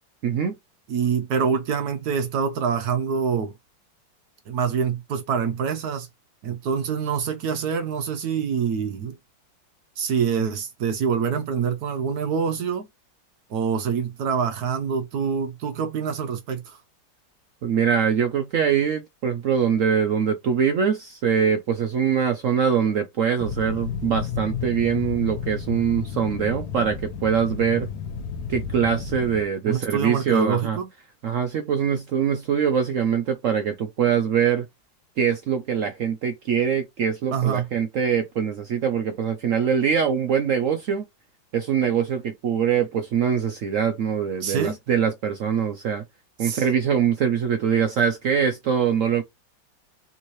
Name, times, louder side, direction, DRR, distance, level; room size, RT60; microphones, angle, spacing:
voice 1, 0.2-0.5 17.6-27.9 28.5-30.8 31.2-34.6 35.2-41.0 41.5-46.0 46.4-49.2, right 7 dB, 85° right, 0.7 m, -23 dB
voice 2, 0.9-3.5 4.5-6.1 6.4-9.1 10.0-12.8 13.5-16.8 29.6-30.9 37.3-37.7 44.4-44.8 46.4-46.7, right 6 dB, 65° right, 1.1 m, -25 dB
sound 1, 23.4-29.4, left 7 dB, 70° left, 1.1 m, -32 dB
3.6 x 3.0 x 2.6 m
omnidirectional pair, 2.1 m